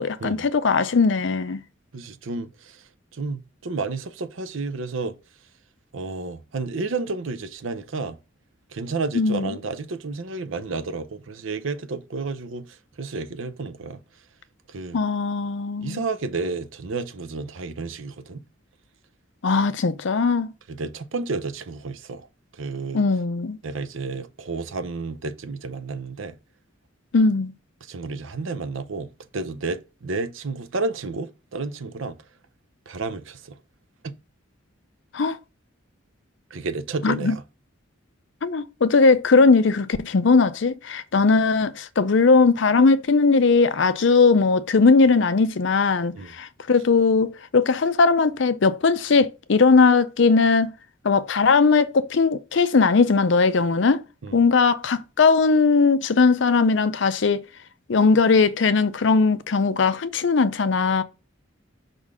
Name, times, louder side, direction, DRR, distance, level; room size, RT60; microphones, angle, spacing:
voice 1, 0.0-1.6 9.1-9.5 14.9-16.0 19.4-20.5 22.9-23.6 27.1-27.5 35.1-35.4 37.0-37.4 38.4-50.7 51.0-54.0 54.3-57.4 57.9-61.0, left 4 dB, 65° left, 0.5 m, -19 dB
voice 2, 1.9-2.8 3.1-5.2 5.9-8.2 8.7-14.0 14.7-15.0 15.8-18.4 20.7-22.3 22.5-23.0 23.6-26.4 27.9-32.2 32.9-33.6 34.0-34.1 36.5-37.4 46.1-46.3 54.2-54.4, right 3 dB, 75° right, 0.6 m, -31 dB
5.3 x 3.8 x 4.8 m
head